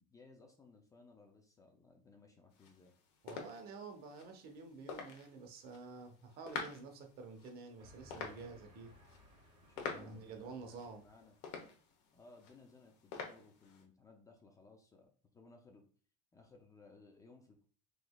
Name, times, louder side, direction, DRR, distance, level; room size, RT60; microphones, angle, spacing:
voice 1, 0.0-2.9 9.7-11.3 12.1-15.8 16.3-17.6, left 3 dB, 15° left, 3 dB, 0.4 m, -61 dB
sound 1, 2.5-13.8, left 5 dB, 75° left, 1.0 m, -49 dB
voice 2, 3.2-8.9 9.9-11.0, right 4 dB, 50° right, 4 dB, 0.8 m, -50 dB
Train, 7.8-11.7, left 1 dB, 25° right, 1.7 m, -63 dB
3.9 x 3.1 x 2.2 m, 0.42 s
supercardioid pair, 135°, 21 cm